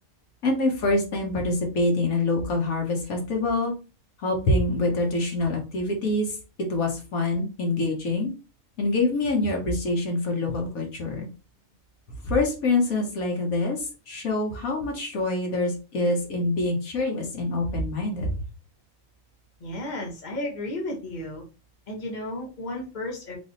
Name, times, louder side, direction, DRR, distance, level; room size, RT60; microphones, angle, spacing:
voice 1, 0.4-3.7 4.2-6.4 6.7-8.3 8.8-11.3 12.2-18.3, left 2 dB, 70° left, 1 dB, 1.5 m, -25 dB
voice 2, 19.6-21.4 21.9-23.4, left 1 dB, 30° left, -1 dB, 1.3 m, -33 dB
3.4 x 3.0 x 3.9 m, 0.33 s
omnidirectional pair, 1.6 m